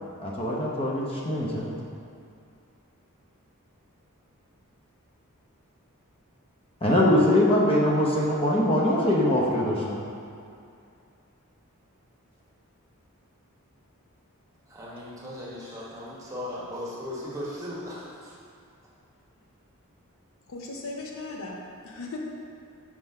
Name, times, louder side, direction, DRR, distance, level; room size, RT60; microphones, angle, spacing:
voice 1, 0.2-1.7 6.8-10.0, left 1 dB, 25° left, -4 dB, 0.7 m, -23 dB
voice 2, 14.7-18.4, left 1 dB, 15° right, -6 dB, 1.0 m, -37 dB
voice 3, 20.5-22.2, left 3 dB, 65° left, 0 dB, 0.6 m, -37 dB
4.6 x 3.8 x 5.4 m, 2.4 s
head